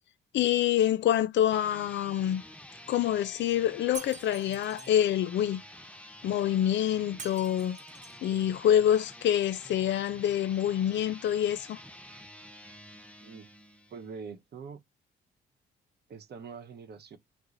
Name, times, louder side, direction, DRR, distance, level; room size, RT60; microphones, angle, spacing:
voice 1, 0.3-2.4 2.9-5.6 6.2-7.8 8.2-11.8, left 11 dB, 65° left, 0.4 m, -26 dB
sound 1, 1.4-14.2, left 1 dB, 5° left, 0.6 m, -49 dB
Shatter, 3.9-4.9 7.2-8.2, right 3 dB, 35° right, 1.2 m, -45 dB
voice 2, 13.2-13.5 13.9-14.8 16.1-17.2, right 5 dB, 55° right, 0.9 m, -44 dB
3.0 x 2.1 x 3.7 m
cardioid pair, 90°, 20 cm